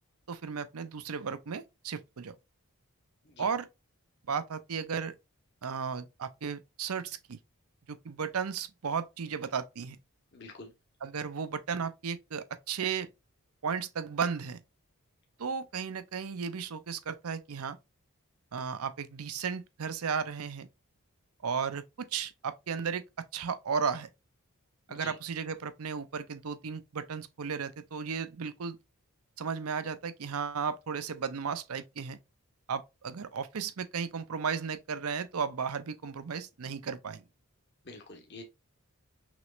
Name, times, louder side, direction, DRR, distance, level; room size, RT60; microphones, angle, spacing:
voice 1, 0.3-2.3 3.4-3.7 4.3-5.1 5.6-7.4 7.9-10.0 11.0-13.1 13.6-14.6 15.4-17.8 18.5-20.7 21.4-24.1 24.9-28.8 29.4-32.2 32.7-37.2, right 6 dB, 80° right, 0.6 m, -34 dB
voice 2, 10.3-10.7 24.9-25.2 37.8-38.4, left 3 dB, 50° left, 1.1 m, -47 dB
6.0 x 3.2 x 2.4 m
head